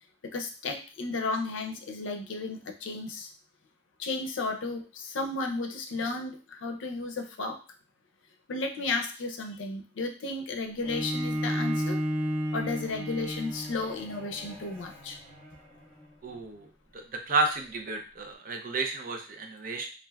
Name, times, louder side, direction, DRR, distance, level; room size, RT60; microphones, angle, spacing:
voice 1, 0.3-3.3 4.0-7.6 8.5-12.0 12.5-15.2, left 3 dB, 80° left, 4 dB, 0.5 m, -33 dB
Bowed string instrument, 10.8-16.0, equal, 20° right, 1.6 m, -33 dB
voice 2, 16.2-16.7 16.9-19.9, right 3 dB, 45° right, 4 dB, 0.5 m, -31 dB
3.3 x 2.5 x 2.2 m, 0.35 s
head